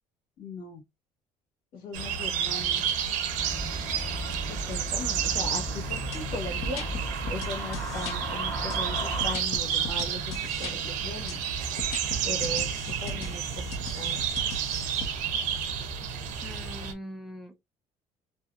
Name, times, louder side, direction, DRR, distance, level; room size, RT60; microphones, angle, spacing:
voice 1, 0.4-0.8 1.7-2.8 4.5-6.8 7.3-11.4 12.2-12.7 13.0-13.7 14.0-14.3, left 2 dB, 80° left, 1.5 m, -38 dB
sound 1, 1.9-16.9, right 8 dB, 70° right, 0.6 m, -31 dB
sound 2, 3.4-9.3, right 1 dB, 20° left, 1.9 m, -35 dB
sound 3, 6.1-6.2 6.6-8.2 8.7-10.7 11.3-11.4 11.8-15.1, left 2 dB, 60° left, 0.7 m, -38 dB
voice 2, 13.0-13.3 16.4-17.5, equal, ahead, 0.4 m, -42 dB
2.8 x 2.7 x 2.3 m
cardioid pair, 180°, 13 cm